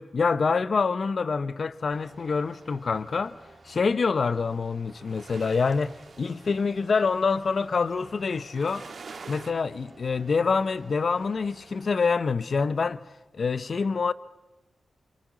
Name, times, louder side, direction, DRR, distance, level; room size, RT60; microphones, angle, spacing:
voice 1, 0.0-3.4 3.6-8.9 9.3-13.0 13.3-14.1, left 5 dB, 60° left, 0.9 m, -26 dB
sound 1, 1.9-11.9, right 3 dB, 45° right, 3.8 m, -53 dB
sound 2, 4.4-9.5, right 4 dB, 60° right, 2.5 m, -47 dB
28.0 x 26.0 x 6.2 m
cardioid pair, 55°, 0 cm